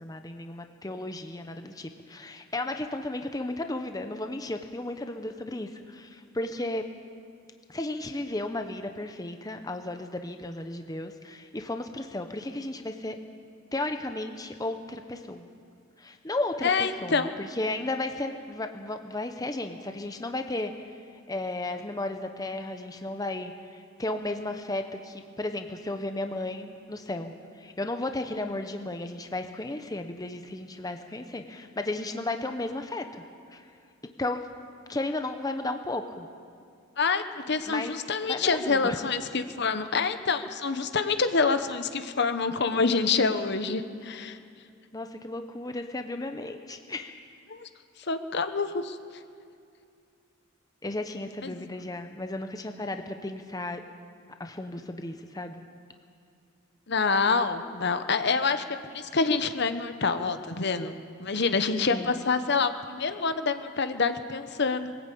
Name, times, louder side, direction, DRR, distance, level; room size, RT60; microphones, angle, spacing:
voice 1, 0.0-6.8 7.7-13.2 13.7-15.5 16.0-20.7 21.3-33.2 33.5-33.6 34.2-34.4 34.9-36.3 37.7-37.9 38.2-39.0 44.9-47.1 50.8-53.8 54.4-55.6 61.9-62.2, left 2 dB, 20° left, 6 dB, 0.8 m, -34 dB
voice 2, 16.6-17.3 37.0-44.4 47.5-47.7 48.1-49.0 51.4-51.6 56.9-64.9, left 4 dB, 55° left, 9 dB, 1.0 m, -27 dB
22.0 x 14.0 x 8.5 m, 2.4 s
head